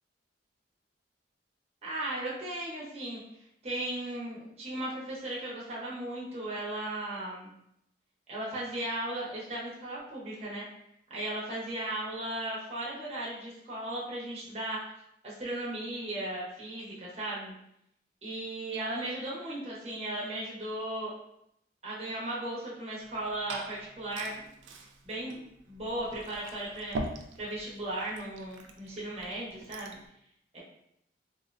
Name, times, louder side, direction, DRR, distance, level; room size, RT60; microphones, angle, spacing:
voice 1, 1.8-3.2 3.6-7.5 8.3-10.6 11.1-14.9 15.2-17.5 18.2-21.1 21.8-24.4 25.0-25.4 25.7-27.0 27.4-30.0 30.5-30.6, right 1 dB, 35° right, -6 dB, 0.8 m, -36 dB
Glass / Fill (with liquid), 23.0-30.1, right 2 dB, 90° right, 0.4 m, -43 dB
3.9 x 2.1 x 2.5 m, 0.76 s
head